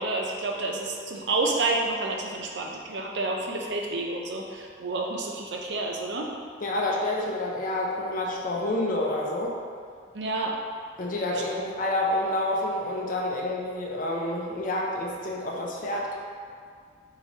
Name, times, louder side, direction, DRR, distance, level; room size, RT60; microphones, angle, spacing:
voice 1, 0.0-6.3 10.1-10.6, right 2 dB, 75° right, 0 dB, 0.6 m, -29 dB
voice 2, 6.6-9.6 11.0-16.2, left 1 dB, 50° left, -2 dB, 0.6 m, -28 dB
3.8 x 3.3 x 4.0 m, 2.1 s
head